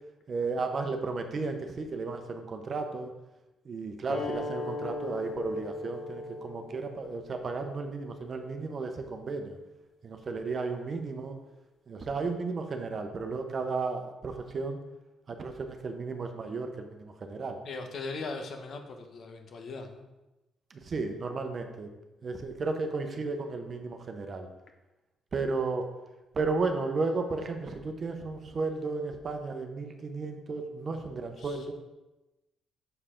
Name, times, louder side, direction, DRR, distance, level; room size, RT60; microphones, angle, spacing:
voice 1, 0.3-3.1 3.6-9.6 10.0-11.4 11.9-14.8 15.3-17.6 20.7-21.9 22.2-24.5 25.3-25.9 26.3-31.7, right 3 dB, 45° right, 5 dB, 0.8 m, -34 dB
sound 1, 4.1-9.2, left 2 dB, 75° left, 2.4 m, -39 dB
voice 2, 17.6-20.1 31.4-31.7, left 3 dB, 60° left, 5 dB, 1.0 m, -39 dB
6.7 x 4.7 x 3.7 m, 1.0 s
cardioid pair, 90°, 0 cm